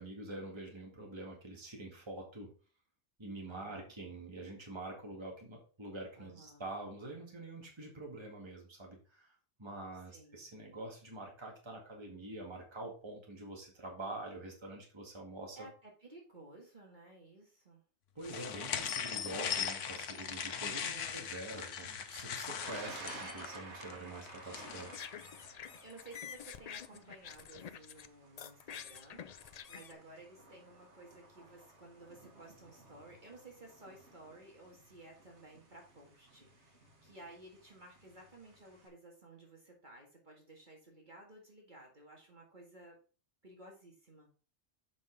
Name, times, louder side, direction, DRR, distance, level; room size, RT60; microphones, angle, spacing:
voice 1, 0.0-2.5 3.2-15.7 18.2-25.1, right 2 dB, 25° right, 0 dB, 1.9 m, -46 dB
voice 2, 3.5-3.9 6.2-6.7 10.1-10.4 15.6-17.8 20.7-21.3 24.6-24.9 25.8-43.0 43.4-44.3, right 2 dB, 40° right, -1 dB, 2.0 m, -55 dB
sound 1, 18.2-25.1, left 7 dB, 85° left, 1.1 m, -39 dB
Thunder, 22.6-38.9, right 2 dB, 70° right, 2.1 m, -54 dB
sound 2, 24.8-28.1 28.4-29.9, left 8 dB, 60° left, 0.4 m, -48 dB
7.5 x 5.4 x 3.9 m, 0.38 s
omnidirectional pair, 1.2 m